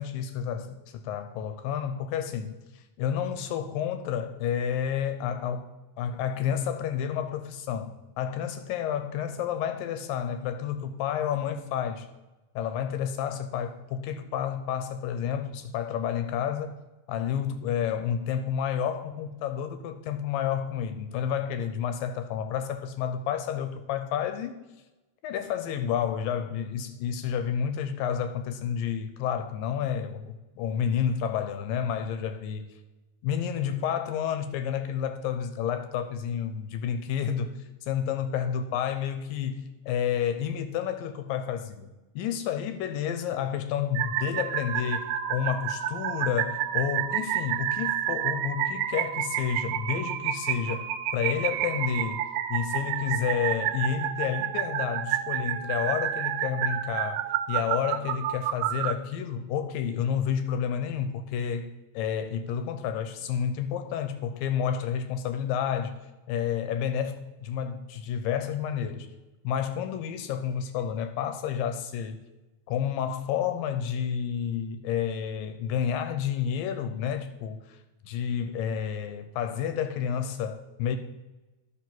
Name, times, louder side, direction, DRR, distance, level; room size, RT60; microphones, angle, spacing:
voice 1, 0.0-5.7 6.0-12.1 12.6-16.8 17.1-24.6 25.2-32.7 33.2-52.2 52.5-65.9 66.3-69.1 69.4-72.2 72.7-77.8 78.0-81.0, left 8 dB, 80° left, 2.3 m, -30 dB
sound 1, 44.0-58.9, right 11 dB, 85° right, 2.4 m, -30 dB
12.0 x 5.3 x 5.9 m
omnidirectional pair, 4.1 m